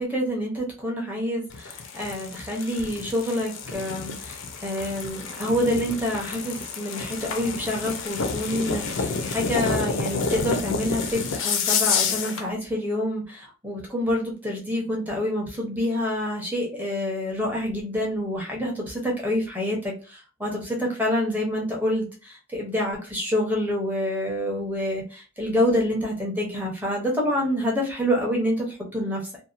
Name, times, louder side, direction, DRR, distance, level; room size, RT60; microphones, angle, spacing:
voice 1, 0.0-29.2, left 1 dB, 10° right, -2 dB, 0.7 m, -27 dB
sound 1, 1.5-12.5, left 5 dB, 55° left, 0.4 m, -29 dB
2.7 x 2.1 x 2.4 m, 0.34 s
head